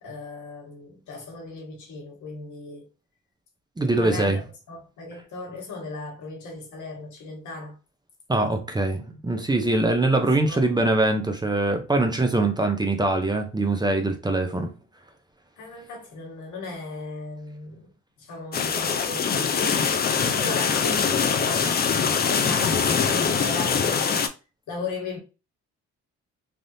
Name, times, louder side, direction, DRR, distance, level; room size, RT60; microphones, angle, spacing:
voice 1, 0.0-2.9 4.0-7.8 10.1-10.8 15.6-17.9 18.2-20.1 20.4-24.3 24.7-25.2, left 3 dB, 80° left, 1.3 m, -37 dB
voice 2, 3.8-4.4 8.3-14.7, right 2 dB, 15° right, 0.6 m, -23 dB
sound 1, 18.5-24.3, left 6 dB, 35° left, 0.4 m, -23 dB
3.4 x 2.4 x 2.6 m
cardioid pair, 90°, 30 cm